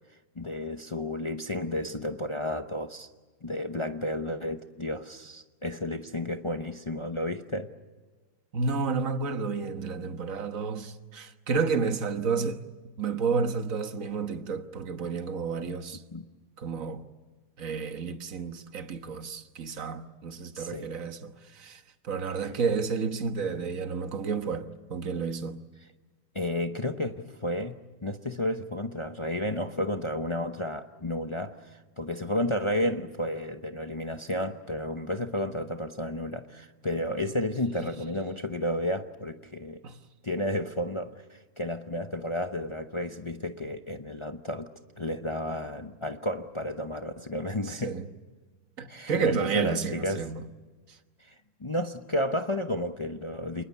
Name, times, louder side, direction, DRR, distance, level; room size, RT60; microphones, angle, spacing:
voice 1, 0.4-3.1 3.4-7.7 16.1-16.2 20.5-20.9 26.3-39.8 40.2-44.7 45.0-47.9 48.9-50.3 51.2-51.3 51.6-53.6, left 1 dB, 35° left, 0.4 m, -32 dB
voice 2, 8.5-12.6 13.0-16.0 16.6-17.1 17.6-25.6 39.8-40.0 47.6-48.0 48.8-50.5, right 5 dB, 45° right, 1.6 m, -31 dB
28.5 x 20.5 x 8.3 m
omnidirectional pair, 2.1 m